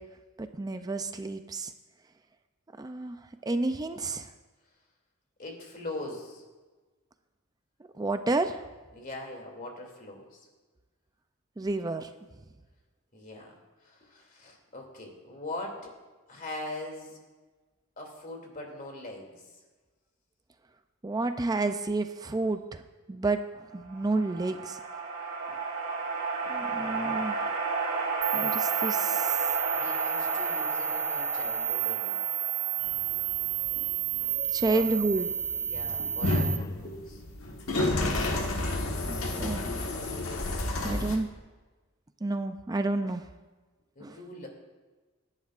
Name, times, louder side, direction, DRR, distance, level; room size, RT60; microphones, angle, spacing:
voice 1, 0.4-1.7 2.8-4.3 8.0-8.6 11.6-12.1 21.0-22.8 23.1-23.5 23.7-24.8 26.5-27.5 28.3-29.3 34.5-35.3 39.0-39.6 40.8-41.3 42.2-43.2 44.0-44.1, right 2 dB, 20° right, 8 dB, 0.4 m, -30 dB
voice 2, 5.4-6.4 8.9-10.4 13.1-13.5 13.8-15.9 16.3-17.2 18.0-19.4 29.7-32.2 34.7-34.9 35.5-37.2 37.5-37.6 44.0-44.5, left 1 dB, 40° left, 1 dB, 2.7 m, -41 dB
sound 1, 23.9-33.4, right 4 dB, 90° right, 3.2 m, -32 dB
sound 2, 28.2-36.6, right 10 dB, 40° right, 2.0 m, -31 dB
sound 3, 32.8-41.2, left 2 dB, 70° left, 1.4 m, -31 dB
26.0 x 10.5 x 2.5 m, 1.3 s
head